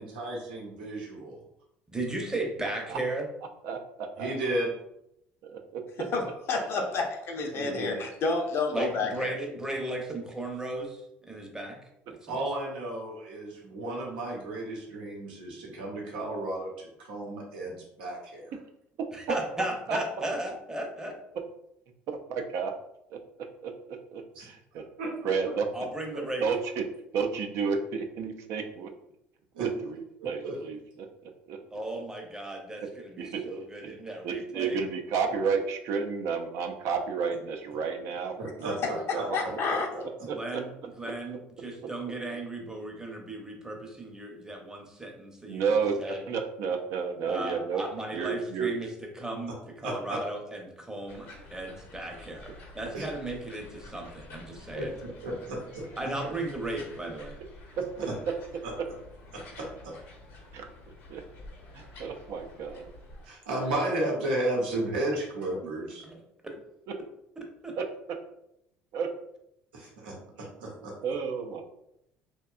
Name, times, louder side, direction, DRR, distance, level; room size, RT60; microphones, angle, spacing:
voice 1, 0.0-1.4 4.2-4.7 7.5-8.0 12.3-18.5 24.4-24.5 25.0-25.1 29.5-29.7 30.4-30.5 38.4-39.2 39.7-40.0 49.8-50.2 52.9-53.0 54.7-54.8 55.2-55.9 59.3-59.9 63.2-66.0 69.7-70.1 70.6-70.9, right 1 dB, 90° right, -2 dB, 0.8 m, -33 dB
voice 2, 1.9-3.3 8.7-11.0 11.2-11.8 12.2-12.3 19.1-21.2 25.7-26.4 31.7-34.8 40.2-40.7 41.0-46.2 47.3-48.9 49.2-54.9 56.0-57.3 66.0-66.2 66.4-66.5 67.6-67.7, right 1 dB, 10° right, 1 dB, 0.7 m, -36 dB
voice 3, 3.6-4.3 5.4-6.0 19.3-19.4 19.9-20.3 22.1-22.7 23.1-23.2 23.6-23.7 24.1-24.8 25.2-25.7 26.4-26.8 27.1-28.9 29.6-31.6 32.8-32.9 33.2-33.4 33.8-33.9 34.2-39.6 40.3-40.6 41.0-41.4 41.8-41.9 45.5-47.8 48.1-48.8 57.8-57.9 60.5-60.7 61.1-61.2 61.7-62.9 66.9-67.0 67.8-67.9 68.9-69.1 71.0-71.6, right 5 dB, 65° right, 5 dB, 0.4 m, -31 dB
voice 4, 6.0-9.3 38.8-39.9, left 4 dB, 55° left, 2 dB, 0.5 m, -30 dB
sound 1, 51.1-63.3, left 2 dB, 75° left, 0.8 m, -49 dB
2.7 x 2.2 x 2.4 m, 0.79 s
hypercardioid pair, 70°, 5 cm